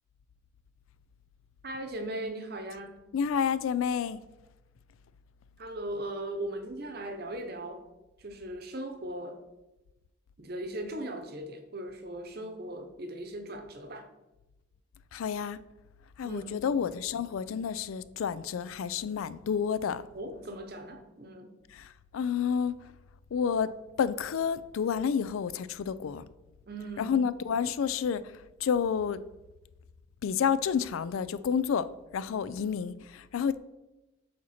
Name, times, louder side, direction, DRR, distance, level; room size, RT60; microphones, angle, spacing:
voice 1, 1.6-3.0 5.6-7.8 8.2-9.4 10.4-14.1 16.2-16.6 20.1-21.6 26.7-27.1, right 1 dB, 50° right, 0.8 m, -38 dB
voice 2, 3.1-4.2 15.1-15.6 16.2-20.1 21.7-22.8 23.3-26.2 27.0-28.2 28.6-29.2 30.2-31.9 32.1-33.6, left 7 dB, 85° left, 0.3 m, -30 dB
7.5 x 4.2 x 4.2 m
head